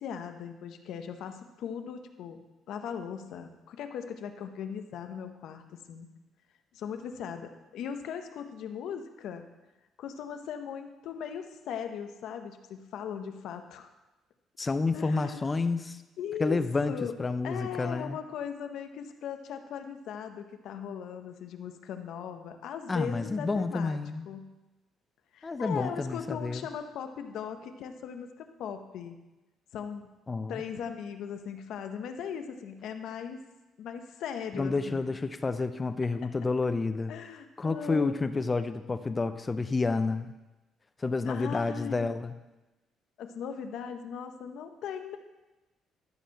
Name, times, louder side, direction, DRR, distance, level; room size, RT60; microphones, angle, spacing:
voice 1, 0.0-2.4 2.7-6.1 6.7-9.4 10.0-13.9 14.9-15.4 16.2-16.6 16.9-17.1 17.4-24.0 24.3-24.5 25.3-29.2 29.7-30.1 30.5-33.4 33.8-35.2 37.1-38.2 41.2-42.2 43.2-45.2, left 7 dB, 65° left, 7 dB, 0.8 m, -39 dB
voice 2, 14.6-16.0 16.4-16.9 17.2-18.2 22.9-24.3 25.4-26.7 30.3-30.6 34.5-37.1 37.6-40.3 41.0-42.3, left 3 dB, 15° left, 11 dB, 0.4 m, -29 dB
12.5 x 4.5 x 6.4 m, 1.1 s
cardioid pair, 175°, 0 cm